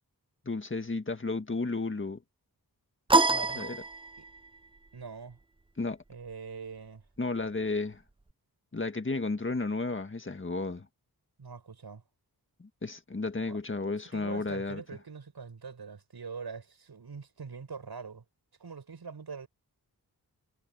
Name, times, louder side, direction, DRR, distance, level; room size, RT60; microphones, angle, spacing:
voice 1, 0.4-2.2 3.5-3.8 5.8-6.0 7.2-8.0 8.7-10.9 12.6-14.8, left 3 dB, 30° left, 1.8 m, -33 dB
sound 1, 3.1-4.5, right 2 dB, 15° right, 0.6 m, -25 dB
voice 2, 3.3-3.6 4.2-4.3 4.9-5.4 6.1-7.0 11.4-12.0 13.5-13.6 14.1-18.2 18.6-19.5, right 5 dB, 75° right, 6.8 m, -43 dB
wide cardioid pair, 110°, 39 cm